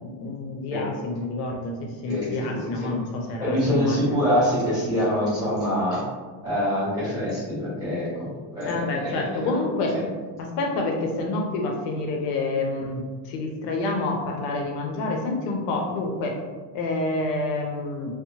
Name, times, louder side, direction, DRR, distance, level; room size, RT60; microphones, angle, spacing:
voice 1, 0.0-4.2 8.7-10.0 10.4-16.4 16.7-18.1, left 2 dB, 70° left, 1 dB, 0.5 m, -28 dB
voice 2, 2.1-2.4 2.8-2.9 3.4-6.0 6.4-8.3 8.5-9.5, equal, 10° right, -10 dB, 1.1 m, -25 dB
2.7 x 2.0 x 2.7 m, 1.5 s
cardioid pair, 175°, 42 cm